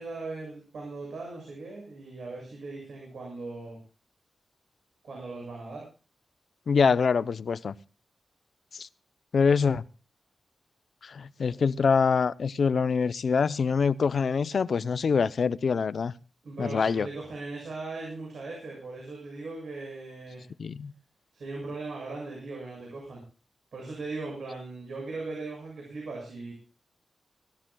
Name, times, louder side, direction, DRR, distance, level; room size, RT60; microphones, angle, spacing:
voice 1, 0.0-3.8 5.0-5.9 16.4-20.4 21.3-23.2 23.7-26.5, right 3 dB, 80° right, 7.5 m, -39 dB
voice 2, 6.7-7.7 8.7-8.9 9.3-9.8 11.0-16.1 16.6-17.1 20.6-20.9, left 5 dB, 65° left, 0.7 m, -25 dB
24.0 x 14.5 x 2.3 m
wide cardioid pair, 115°, 0 cm